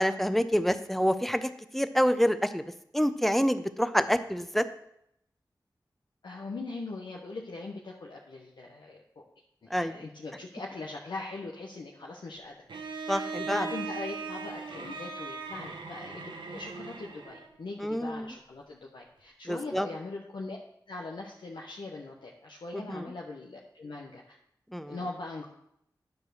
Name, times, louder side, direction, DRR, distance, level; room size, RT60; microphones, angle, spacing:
voice 1, 0.0-2.6 2.9-4.6 9.7-10.0 13.1-13.6 17.8-18.3 19.5-19.9 22.7-23.0 24.7-25.0, equal, 5° left, 11 dB, 0.7 m, -27 dB
voice 2, 6.2-9.0 9.6-12.6 13.3-20.6 20.9-24.4 24.9-25.5, left 3 dB, 85° left, -1 dB, 0.9 m, -40 dB
Bowed string instrument, 12.7-17.6, right 4 dB, 90° right, 0.9 m, -39 dB
9.7 x 4.7 x 6.5 m, 0.76 s
cardioid pair, 50°, 8 cm